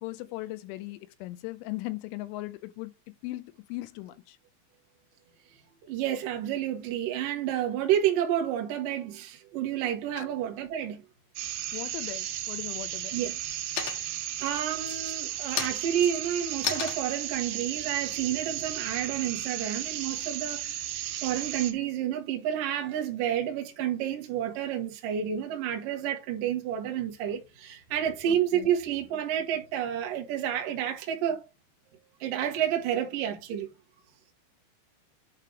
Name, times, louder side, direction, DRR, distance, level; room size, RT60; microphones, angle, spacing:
voice 1, 0.0-4.4 10.2-10.3 11.7-13.2 28.3-28.7, left 18 dB, 85° left, 3.1 m, -38 dB
voice 2, 5.9-11.0 13.1-13.4 14.0-31.4 32.2-33.7, right 10 dB, 65° right, 2.4 m, -30 dB
sound 1, 11.4-21.7, right 12 dB, 80° right, 3.3 m, -35 dB
sound 2, 12.1-12.7 13.1-13.5 13.8-14.3 14.8-19.2, left 8 dB, 65° left, 2.7 m, -36 dB
8.8 x 3.3 x 4.7 m
omnidirectional pair, 5.4 m